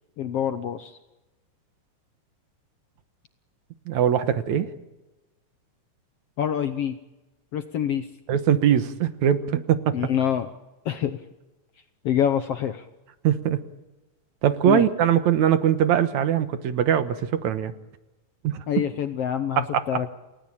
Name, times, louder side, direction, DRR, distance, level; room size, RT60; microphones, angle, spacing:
voice 1, 0.2-1.0 6.4-7.0 7.5-8.1 9.9-10.5 10.8-11.2 12.0-12.8 14.6-14.8 18.7-20.1, left 9 dB, 65° left, 10 dB, 1.6 m, -26 dB
voice 2, 3.9-4.7 8.3-10.0 13.2-13.6 14.4-17.7 18.4-18.6 19.6-19.8, right 10 dB, 70° right, 11 dB, 2.4 m, -21 dB
29.5 x 18.5 x 8.8 m, 1.1 s
omnidirectional pair, 3.7 m